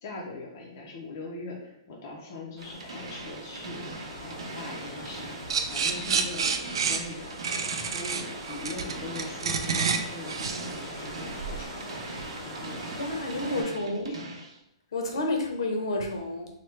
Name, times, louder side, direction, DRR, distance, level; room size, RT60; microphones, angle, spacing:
voice 1, 0.0-3.9 4.2-11.7 12.4-13.8 14.1-14.2, left 3 dB, 30° left, -2 dB, 0.5 m, -41 dB
sound 1, 2.6-13.6, right 1 dB, 10° right, 0.8 m, -41 dB
sound 2, 2.6-14.6, right 2 dB, 85° right, 0.8 m, -43 dB
sound 3, 5.5-11.6, right 6 dB, 60° right, 0.3 m, -29 dB
voice 2, 13.0-14.3 14.9-16.5, left 2 dB, 65° left, 3 dB, 0.7 m, -30 dB
3.1 x 2.2 x 3.2 m, 0.83 s
hypercardioid pair, 180°, 3 cm